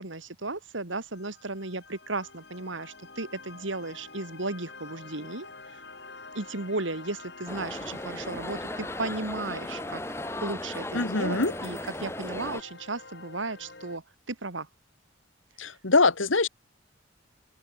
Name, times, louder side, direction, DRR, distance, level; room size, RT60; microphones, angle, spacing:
voice 1, 0.0-5.5 6.3-10.0 10.4-14.7, right 2 dB, 80° right, 2.3 m, -35 dB
sound 1, 1.1-14.0, left 3 dB, 60° left, 6.7 m, -47 dB
sound 2, 7.5-12.6, left 1 dB, 15° left, 1.8 m, -36 dB
voice 2, 10.9-11.5 15.6-16.5, left 3 dB, 85° left, 1.9 m, -23 dB
open air
head